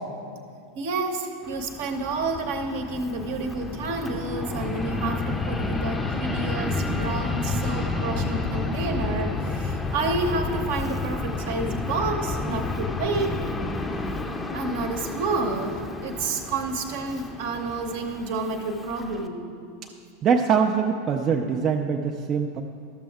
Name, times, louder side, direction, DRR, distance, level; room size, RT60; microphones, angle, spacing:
voice 1, 0.7-13.4 14.5-19.5, right 3 dB, 60° right, 5 dB, 0.8 m, -29 dB
Fixed-wing aircraft airplane, 1.4-19.3, left 3 dB, 15° left, 0.6 m, -30 dB
voice 2, 20.2-22.6, right 6 dB, 35° right, 2 dB, 0.4 m, -23 dB
12.5 x 6.8 x 3.5 m, 2.3 s
figure-of-eight pair, 85°, 0 cm